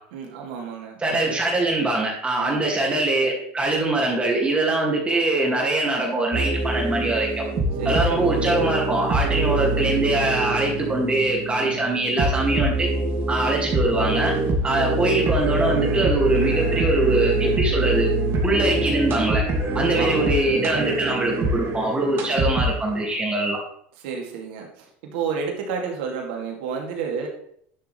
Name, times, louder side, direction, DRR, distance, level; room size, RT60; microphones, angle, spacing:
voice 1, 0.1-1.0 2.4-2.7 7.8-8.3 19.7-20.4 24.0-27.3, right 6 dB, 75° right, 1 dB, 2.6 m, -31 dB
voice 2, 1.0-7.4 7.9-12.9 13.3-14.3 14.6-18.1 18.4-19.4 19.7-23.6, right 2 dB, 20° right, -1 dB, 2.3 m, -23 dB
sound 1, 6.3-23.1, right 2 dB, 45° right, 2.6 m, -24 dB
11.5 x 6.8 x 3.4 m, 0.66 s
supercardioid pair, 100°, 6 cm